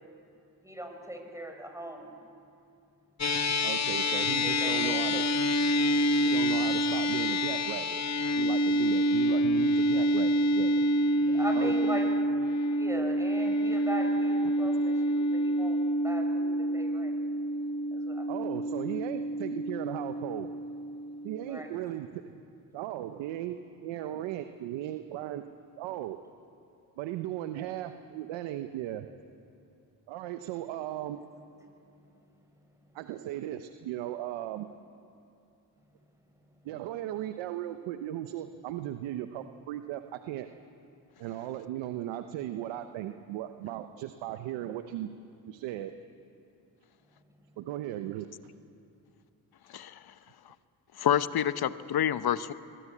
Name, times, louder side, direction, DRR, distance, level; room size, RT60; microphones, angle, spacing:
voice 1, 0.6-2.1 4.4-5.3 9.7-10.0 11.3-12.2 12.5-15.8 16.0-17.1 17.9-18.4 21.5-21.7 31.3-31.4, right 1 dB, 5° right, 3 dB, 6.5 m, -39 dB
sound 1, 3.2-21.7, equal, 40° left, 1.4 m, -27 dB
voice 2, 3.6-5.2 6.2-8.0 8.4-10.7 11.5-11.9 14.4-14.5 18.3-20.5 21.2-22.2 22.7-25.4 25.8-26.2 27.0-29.1 30.1-31.2 32.9-34.7 36.6-40.5 41.2-45.1 45.4-45.9 47.6-48.3, right 13 dB, 90° right, 9 dB, 0.9 m, -37 dB
voice 3, 51.0-52.5, left 10 dB, 55° left, 14 dB, 1.0 m, -27 dB
24.0 x 21.5 x 8.5 m, 2.6 s
supercardioid pair, 60°, 44 cm